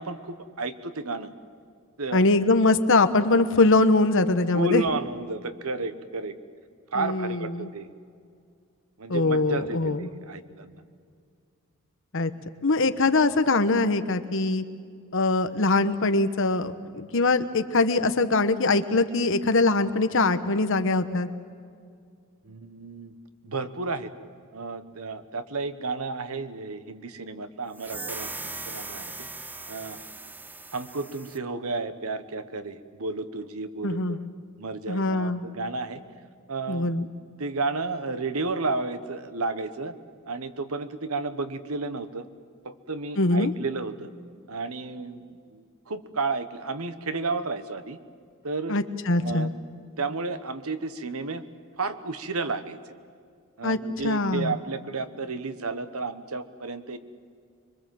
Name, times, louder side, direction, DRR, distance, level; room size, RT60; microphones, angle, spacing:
voice 1, 0.0-1.3 2.0-2.3 4.5-6.4 6.9-7.9 9.0-10.8 22.4-23.1 23.4-24.1 24.5-29.3 29.7-30.0 30.7-34.2 34.6-36.0 36.5-37.0 37.4-39.9 40.3-42.2 42.6-44.1 44.5-48.0 48.4-48.8 49.1-49.5 50.0-51.4 51.8-52.8 53.6-57.0, right 3 dB, 85° right, 11 dB, 1.3 m, -32 dB
voice 2, 2.1-4.8 7.0-7.7 9.1-10.1 12.1-12.3 12.6-14.6 15.1-21.3 33.8-34.3 34.9-35.4 36.7-37.1 43.2-43.5 48.7-49.5 53.6-53.8 54.0-54.6, left 3 dB, 60° left, 10 dB, 1.1 m, -22 dB
sound 1, 27.7-31.4, right 3 dB, 10° right, 0.7 m, -39 dB
25.5 x 23.0 x 7.7 m, 2.2 s
head